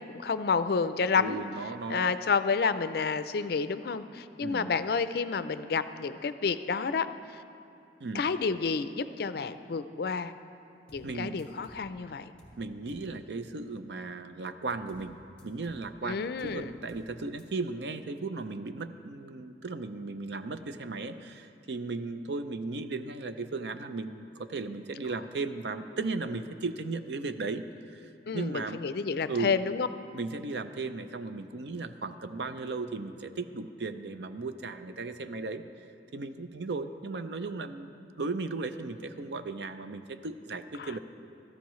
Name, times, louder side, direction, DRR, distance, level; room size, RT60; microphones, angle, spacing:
voice 1, 0.0-1.4 1.9-7.1 8.1-10.3 10.9-12.3 16.0-16.7 28.3-29.9 40.8-40.9, left 5 dB, 60° left, 12 dB, 0.4 m, -30 dB
voice 2, 1.2-2.1 4.4-4.7 8.0-8.2 11.0-11.4 12.6-15.2 15.4-27.7 27.9-28.8 29.3-29.5 30.1-35.6 36.1-41.0, right 3 dB, 70° right, 10 dB, 0.5 m, -36 dB
sound 1, 10.9-11.1 11.4-11.9 12.4-12.6 12.9-13.1 14.9-15.1 15.4-15.9 16.4-16.6 16.9-17.1 17.4-17.5, equal, 5° left, 1.8 m, -54 dB
16.0 x 13.5 x 3.1 m, 2.7 s
head